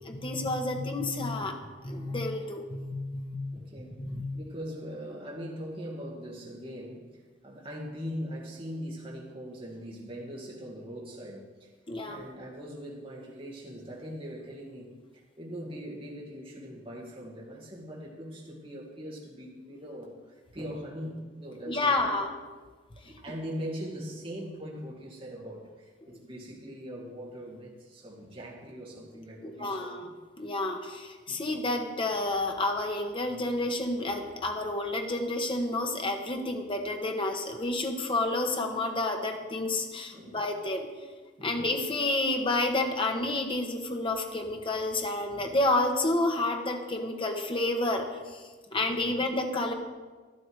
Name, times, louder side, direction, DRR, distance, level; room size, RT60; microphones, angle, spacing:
voice 1, 0.0-1.6 1.8-3.4 4.0-4.2 11.9-12.2 21.7-22.3 29.4-30.1 30.4-40.9 41.4-48.1 48.3-48.4 48.7-49.7, left 2 dB, 30° left, 3 dB, 1.3 m, -30 dB
voice 2, 3.5-4.0 4.3-11.7 12.1-20.1 20.5-22.2 23.0-30.1 31.3-31.5 40.1-40.4 41.4-41.6 45.3-45.5 49.0-49.1, equal, 30° right, -3 dB, 2.2 m, -41 dB
12.0 x 12.0 x 4.8 m, 1.4 s
head